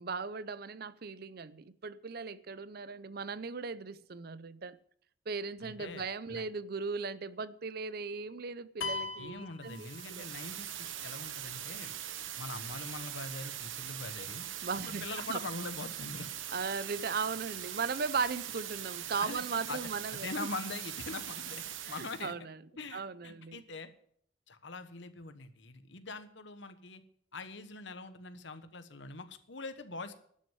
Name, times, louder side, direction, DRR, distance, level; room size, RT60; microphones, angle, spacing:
voice 1, 0.0-4.8 5.3-10.3 14.6-15.4 16.5-20.5 21.9-22.6 22.9-23.6, right 5 dB, 50° right, 0.5 m, -37 dB
voice 2, 5.6-6.4 9.2-11.9 12.4-14.5 14.8-16.3 19.1-19.8 20.1-22.3 22.8-23.9 24.5-27.0 27.3-30.1, left 3 dB, 65° left, 1.2 m, -43 dB
sound 1, 8.8-10.5, left 4 dB, 80° left, 1.4 m, -39 dB
sound 2, 9.6-22.3, right 11 dB, 75° right, 1.0 m, -41 dB
12.0 x 6.4 x 9.2 m
head